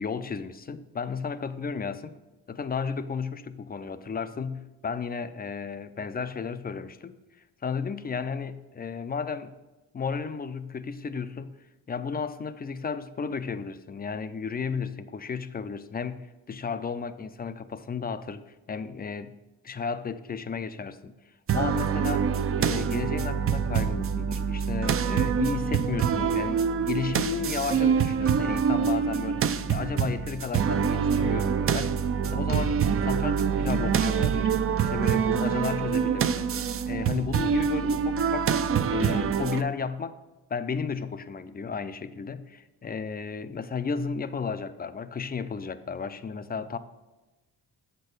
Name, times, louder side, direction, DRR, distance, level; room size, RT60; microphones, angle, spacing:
voice 1, 0.0-2.1 2.5-7.1 7.6-9.5 9.9-11.6 11.9-18.4 18.7-19.3 19.6-21.1 21.5-22.3 22.6-34.5 34.8-36.5 36.9-38.5 38.9-40.2 40.5-46.8, left 5 dB, 25° left, 0.4 m, -33 dB
sound 1, 21.5-39.6, right 7 dB, 35° right, 0.4 m, -25 dB
7.7 x 4.5 x 6.6 m
cardioid pair, 90°, 40 cm